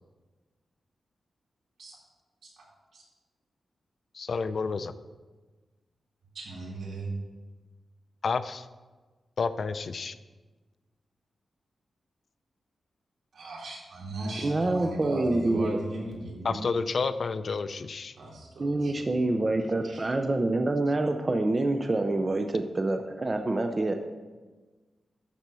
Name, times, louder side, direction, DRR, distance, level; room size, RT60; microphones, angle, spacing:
voice 1, 4.1-4.9 8.2-8.7 9.4-10.2 16.4-18.2, left 4 dB, 55° left, 12 dB, 0.5 m, -30 dB
voice 2, 6.3-7.2 13.3-16.7 18.2-19.1 19.8-20.0, right 2 dB, 80° right, -4 dB, 3.4 m, -37 dB
voice 3, 14.4-15.8 18.6-23.9, right 2 dB, 30° right, 5 dB, 0.6 m, -26 dB
12.5 x 4.4 x 6.8 m, 1.3 s
wide cardioid pair, 115°, 0 cm